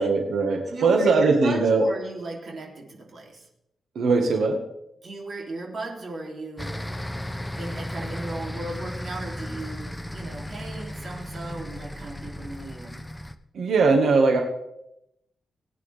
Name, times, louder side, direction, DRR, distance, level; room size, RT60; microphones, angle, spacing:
voice 1, 0.0-1.9 4.0-4.6 13.5-14.4, right 4 dB, 90° right, 3 dB, 1.6 m, -20 dB
voice 2, 0.7-3.5 5.0-6.8 7.5-13.0, right 2 dB, 45° right, -1 dB, 3.0 m, -36 dB
sound 1, 6.6-13.4, left 1 dB, 5° left, 0.6 m, -35 dB
19.5 x 9.5 x 3.4 m, 0.82 s
wide cardioid pair, 155°, 0 cm